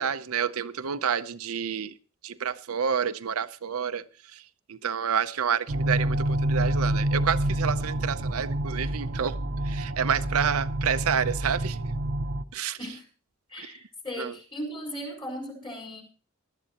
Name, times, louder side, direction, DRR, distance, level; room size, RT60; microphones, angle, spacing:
voice 1, 0.0-1.9 2.2-4.0 4.7-9.4 9.7-11.8 12.5-12.8 13.6-13.7 14.2-14.3, right 7 dB, 90° right, 0.7 m, -29 dB
sound 1, 5.7-12.4, right 1 dB, 65° right, 0.9 m, -28 dB
voice 2, 13.5-16.0, equal, 25° left, 4.5 m, -37 dB
19.0 x 12.5 x 2.9 m
head